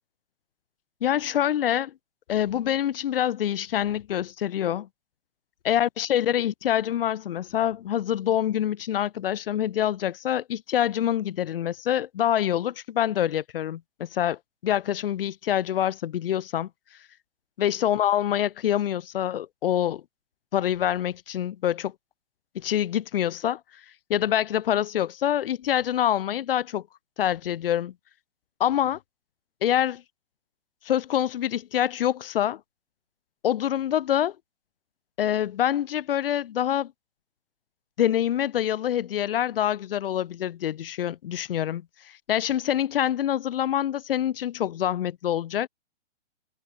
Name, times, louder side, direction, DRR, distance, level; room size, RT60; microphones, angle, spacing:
voice 1, 1.0-1.9 2.3-4.9 5.7-16.7 17.6-20.0 20.5-21.9 22.5-23.6 24.1-26.8 27.2-27.9 28.6-29.0 29.6-30.0 30.8-32.6 33.4-34.3 35.2-36.9 38.0-41.8 42.3-45.7, left 11 dB, 55° left, 2.7 m, -26 dB
hypercardioid pair, 140°, 35 cm